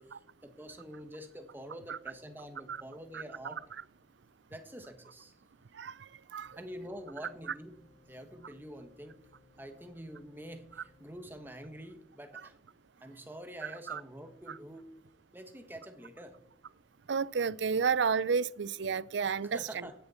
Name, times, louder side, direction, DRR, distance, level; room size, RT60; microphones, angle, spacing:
voice 1, 0.0-3.6 4.5-5.3 6.6-7.7 8.1-9.2 9.6-12.6 13.0-14.9 15.3-16.4 19.4-19.9, equal, 10° right, 1.5 m, -46 dB
voice 2, 3.1-3.5 5.7-6.6 13.6-14.0 14.5-14.6 17.1-19.6, right 6 dB, 80° right, 0.5 m, -32 dB
sound 1, 6.4-11.8, left 3 dB, 15° left, 6.7 m, -65 dB
17.0 x 11.0 x 4.4 m
head